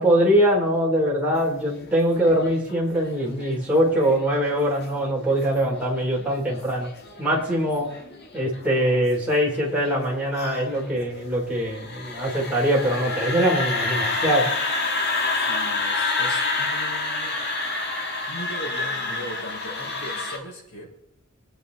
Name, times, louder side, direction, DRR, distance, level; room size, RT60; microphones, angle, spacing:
voice 1, 0.0-6.9 7.2-7.9 8.3-14.5, equal, 5° right, -4 dB, 4.0 m, -22 dB
sound 1, 1.5-20.4, left 3 dB, 45° left, 2.0 m, -29 dB
voice 2, 15.3-17.4 18.3-20.9, equal, 75° left, -2 dB, 5.8 m, -38 dB
24.0 x 8.9 x 4.2 m, 0.78 s
head